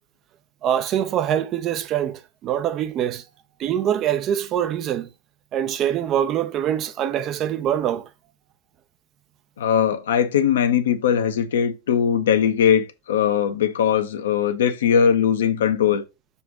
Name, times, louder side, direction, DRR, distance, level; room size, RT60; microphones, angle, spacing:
voice 1, 0.6-3.2 3.6-5.1 5.5-8.1, right 10 dB, 35° right, 0.7 m, -24 dB
voice 2, 9.6-16.0, left 8 dB, 60° left, 1.0 m, -20 dB
7.0 x 3.4 x 5.9 m
figure-of-eight pair, 90°, 0 cm